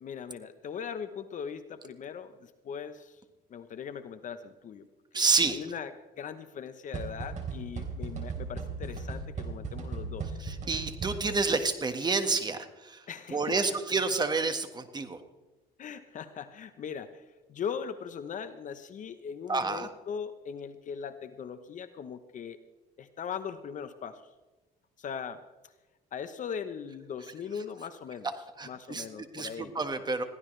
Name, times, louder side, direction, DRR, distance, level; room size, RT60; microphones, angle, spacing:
voice 1, 0.0-3.2 3.5-4.9 5.1-5.9 6.2-10.4 13.1-13.6 15.8-22.6 23.0-24.2 25.0-25.7 26.1-28.3 28.6-29.7, left 7 dB, 50° left, 10 dB, 1.0 m, -40 dB
voice 2, 5.1-5.6 10.4-13.0 13.3-15.2 19.5-19.9 28.6-29.0 29.3-30.2, right 4 dB, 25° right, 8 dB, 1.7 m, -29 dB
sound 1, 6.9-11.5, right 4 dB, 45° right, 3.4 m, -37 dB
22.0 x 15.5 x 3.3 m, 1.1 s
cardioid pair, 110°, 17 cm